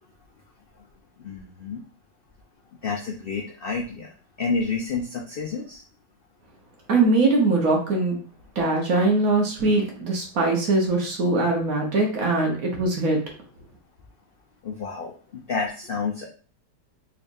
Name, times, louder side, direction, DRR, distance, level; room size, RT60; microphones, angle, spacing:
voice 1, 1.2-1.8 2.8-4.1 4.4-5.8 14.6-16.3, left 4 dB, 75° left, -1 dB, 0.5 m, -29 dB
voice 2, 6.9-8.2 8.5-13.2, right 2 dB, 60° right, 0 dB, 1.4 m, -21 dB
4.0 x 3.3 x 2.6 m, 0.39 s
omnidirectional pair, 1.8 m